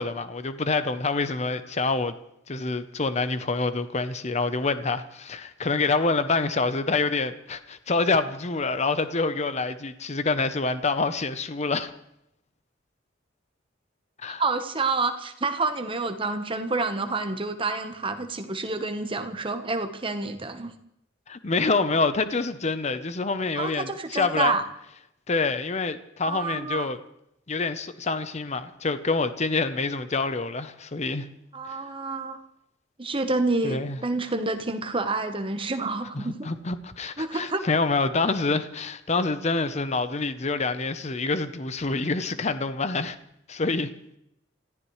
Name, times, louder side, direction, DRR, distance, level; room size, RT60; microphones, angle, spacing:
voice 1, 0.0-2.1 2.5-11.9 14.2-14.4 21.3-24.5 25.3-27.0 27.5-31.3 31.7-31.8 33.6-34.0 36.1-43.2 43.5-43.9, left 3 dB, 35° left, 12 dB, 0.8 m, -26 dB
voice 2, 14.4-20.7 23.5-24.6 26.2-26.9 31.5-32.4 33.0-36.5 37.2-37.6, right 3 dB, 25° right, 7 dB, 1.1 m, -28 dB
28.0 x 14.5 x 3.2 m, 0.78 s
head